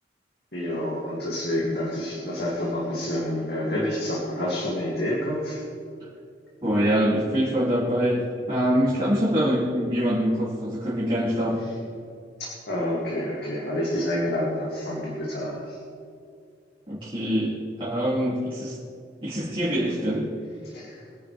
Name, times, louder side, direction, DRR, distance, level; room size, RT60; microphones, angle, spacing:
voice 1, 0.5-5.6 12.4-15.8 20.6-21.0, left 1 dB, 65° left, -5 dB, 2.6 m, -28 dB
voice 2, 6.6-11.7 16.9-18.8 19.2-20.3, equal, 30° right, -8 dB, 2.8 m, -24 dB
23.0 x 10.5 x 3.5 m, 2.4 s
head